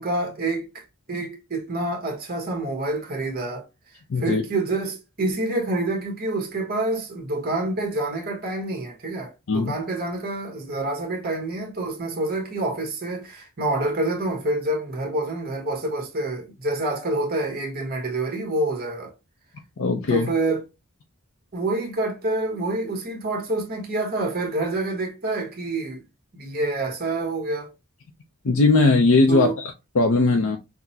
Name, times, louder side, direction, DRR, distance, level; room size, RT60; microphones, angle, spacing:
voice 1, 0.0-3.6 4.2-19.1 20.1-20.6 21.5-26.0 26.3-27.7 29.3-29.5, right 2 dB, 45° right, 1.2 m, -27 dB
voice 2, 4.1-4.4 9.5-9.7 19.8-20.3 28.4-30.6, left 3 dB, 65° left, 0.6 m, -19 dB
5.9 x 2.1 x 2.7 m
head